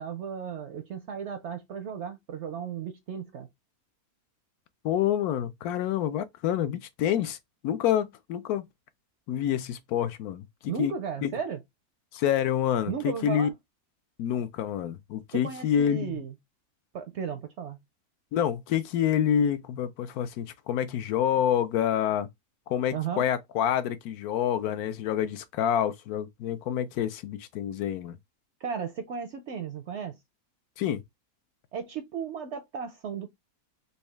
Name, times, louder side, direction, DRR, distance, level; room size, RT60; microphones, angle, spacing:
voice 1, 0.0-3.5 10.7-11.6 12.9-13.5 15.3-16.3 16.9-17.8 22.9-23.3 28.6-30.2 31.7-33.4, right 7 dB, 70° right, 0.7 m, -35 dB
voice 2, 4.8-7.4 7.6-8.7 9.3-10.9 11.2-11.3 12.1-13.5 14.2-16.2 18.3-22.3 22.7-28.2 30.8-31.0, left 9 dB, 80° left, 1.1 m, -27 dB
4.1 x 2.3 x 3.2 m
omnidirectional pair, 1.6 m